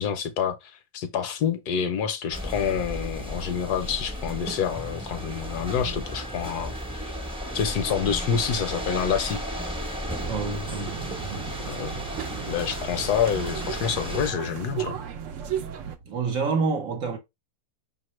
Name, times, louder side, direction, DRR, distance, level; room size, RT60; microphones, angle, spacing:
voice 1, 0.0-7.1 7.5-9.4 11.7-11.9 12.5-15.0, left 7 dB, 75° left, 1.1 m, -27 dB
sound 1, 2.3-14.3, equal, 5° right, 0.5 m, -34 dB
sound 2, 10.2-16.0, right 9 dB, 80° right, 0.7 m, -35 dB
voice 2, 10.3-11.0 11.3-11.9 16.1-17.2, right 4 dB, 55° right, 1.2 m, -28 dB
5.4 x 2.9 x 3.1 m
omnidirectional pair, 1.9 m